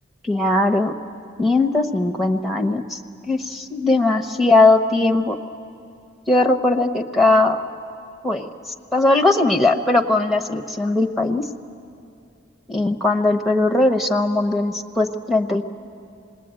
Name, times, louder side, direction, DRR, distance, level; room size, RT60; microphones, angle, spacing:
voice 1, 0.2-0.9 1.4-3.0 3.3-5.4 6.3-7.6 8.2-8.5 8.9-11.4 12.7-15.6, left 2 dB, ahead, 3 dB, 1.0 m, -19 dB
26.5 x 21.0 x 9.0 m, 2.5 s
head